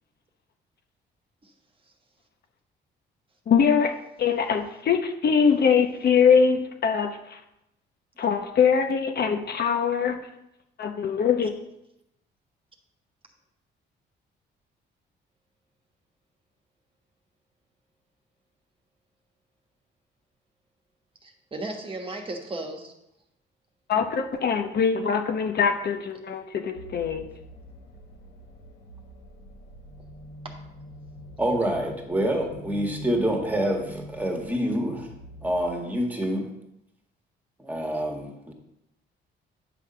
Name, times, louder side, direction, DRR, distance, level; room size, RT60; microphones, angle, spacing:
voice 1, 3.5-7.4 8.2-10.2 10.8-11.5 23.9-27.3, left 6 dB, 55° left, 6 dB, 0.8 m, -23 dB
voice 2, 21.2-22.9 30.4-30.5, right 2 dB, 25° right, 2 dB, 1.4 m, -35 dB
sound 1, 26.7-35.7, equal, 75° left, 1.5 m, -44 dB
voice 3, 31.4-35.1 35.4-36.5 37.6-38.5, equal, 10° right, 1 dB, 1.9 m, -27 dB
9.5 x 3.5 x 6.8 m, 0.85 s
cardioid pair, 90°, 20 cm